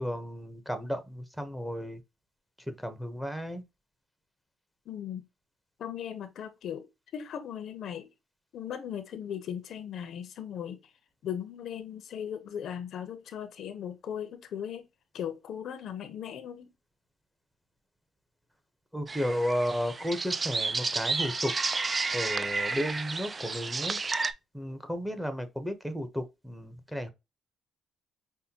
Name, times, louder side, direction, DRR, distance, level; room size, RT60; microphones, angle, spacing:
voice 1, 0.0-2.0 2.7-3.6 18.9-21.5 22.1-24.0 24.5-27.1, equal, 5° right, 0.8 m, -33 dB
voice 2, 4.9-5.2 5.8-6.9 7.1-8.1 8.5-10.8 11.2-14.8 15.1-16.7, left 9 dB, 70° left, 0.7 m, -38 dB
sound 1, 19.1-24.3, right 3 dB, 30° right, 0.4 m, -31 dB
5.5 x 2.2 x 2.8 m
cardioid pair, 90°, 0 cm